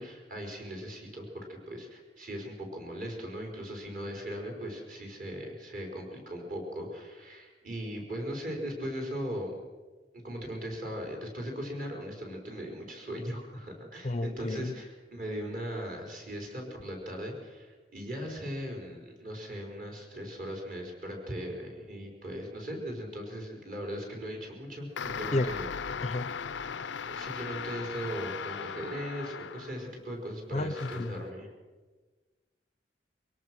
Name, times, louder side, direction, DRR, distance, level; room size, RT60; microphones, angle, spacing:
voice 1, 0.0-9.5 10.2-25.7 27.0-31.5, equal, 45° right, 1 dB, 4.9 m, -39 dB
voice 2, 14.0-14.8 25.3-25.5 26.0-26.3 30.5-31.2, left 2 dB, 35° left, 13 dB, 0.6 m, -31 dB
sound 1, 25.0-30.0 30.7-31.3, left 6 dB, 85° left, 0.5 m, -38 dB
23.5 x 18.0 x 6.3 m, 1.3 s
head